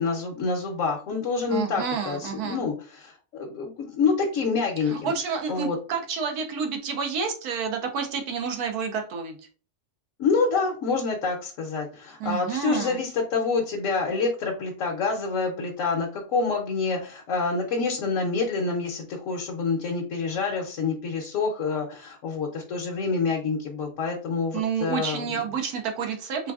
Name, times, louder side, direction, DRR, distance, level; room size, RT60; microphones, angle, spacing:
voice 1, 0.0-3.1 3.4-5.1 5.5-5.8 10.2-25.4, left 4 dB, 65° left, 0 dB, 1.0 m, -27 dB
voice 2, 1.5-2.6 4.8-9.3 12.2-13.0 24.5-26.5, right 6 dB, 85° right, 4 dB, 1.3 m, -29 dB
3.7 x 3.4 x 2.3 m, 0.38 s
omnidirectional pair, 1.6 m